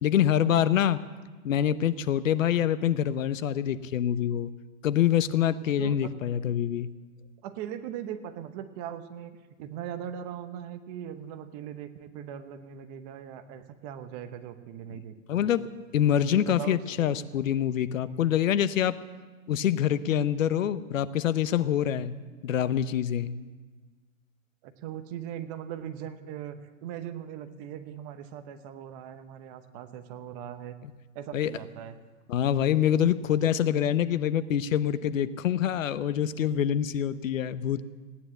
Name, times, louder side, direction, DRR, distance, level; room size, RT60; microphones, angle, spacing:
voice 1, 0.0-1.0 1.4-4.5 4.8-6.9 15.3-15.7 15.9-19.0 19.5-22.1 22.4-23.3 31.3-31.5 32.3-37.8, left 10 dB, 75° left, 14 dB, 0.9 m, -25 dB
voice 2, 7.4-15.7 16.3-17.2 24.6-30.8 31.1-32.0, right 9 dB, 30° right, 9 dB, 0.9 m, -40 dB
17.0 x 9.8 x 7.8 m, 1.3 s
hypercardioid pair, 145°, 40 cm